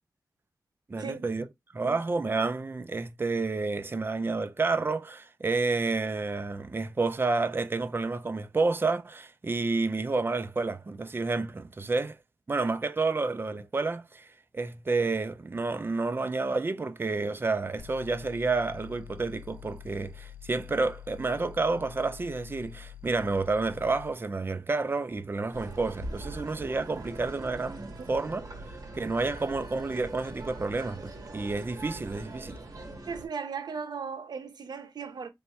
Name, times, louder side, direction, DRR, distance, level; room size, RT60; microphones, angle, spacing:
voice 1, 0.9-1.5 1.7-12.2 12.5-14.3 14.5-28.4 29.0-32.5, right 3 dB, 30° right, 0.5 m, -30 dB
sound 1, 17.8-24.2, left 11 dB, 50° left, 0.6 m, -47 dB
sound 2, 25.5-33.3, right 1 dB, 55° right, 1.6 m, -42 dB
voice 2, 33.1-35.3, right 5 dB, 70° right, 0.9 m, -37 dB
3.4 x 2.6 x 4.3 m
wide cardioid pair, 85°, 7 cm